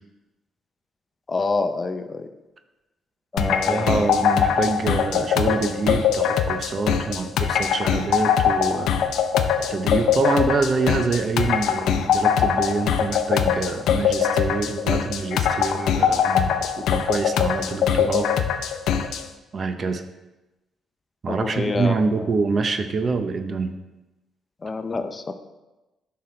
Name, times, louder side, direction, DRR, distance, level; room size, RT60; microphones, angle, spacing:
voice 1, 1.3-2.3 3.3-4.1 21.3-22.3 24.6-25.3, left 3 dB, 30° left, 8 dB, 0.6 m, -27 dB
sound 1, 3.4-19.2, left 8 dB, 80° left, 0.6 m, -22 dB
voice 2, 3.4-8.9 9.7-18.3 19.5-20.0 21.2-23.7, right 4 dB, 45° right, 8 dB, 0.7 m, -26 dB
9.8 x 5.9 x 3.3 m, 1.0 s
cardioid pair, 90°, 0 cm